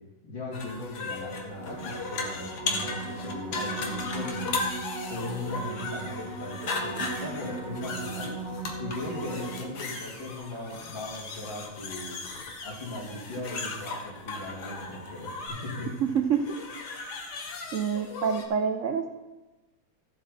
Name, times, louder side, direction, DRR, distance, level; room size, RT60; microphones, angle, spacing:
voice 1, 0.2-4.7 5.1-8.3 8.8-12.2 12.6-15.9, left 1 dB, 80° left, -7 dB, 3.5 m, -38 dB
sound 1, 0.5-18.4, left 3 dB, 60° left, 1.6 m, -37 dB
sound 2, 1.5-10.1 15.5-15.6, right 3 dB, 15° right, 2.1 m, -38 dB
voice 2, 16.0-16.6 17.7-19.1, right 7 dB, 70° right, 6 dB, 0.7 m, -27 dB
14.0 x 7.5 x 4.1 m, 1.1 s
omnidirectional pair, 2.0 m